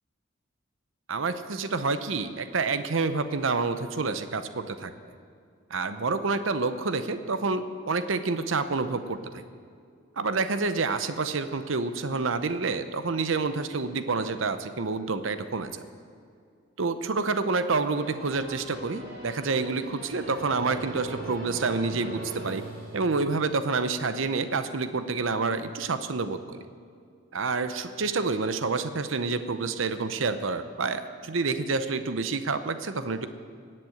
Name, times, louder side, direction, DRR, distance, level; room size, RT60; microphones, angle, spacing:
voice 1, 1.1-4.9 5.7-9.4 10.2-15.8 16.8-22.6 22.9-26.6 27.3-33.3, right 4 dB, 80° right, 11 dB, 0.8 m, -28 dB
sound 1, 17.9-23.6, right 2 dB, 45° right, 4.3 m, -40 dB
18.0 x 7.8 x 7.8 m, 2.3 s
head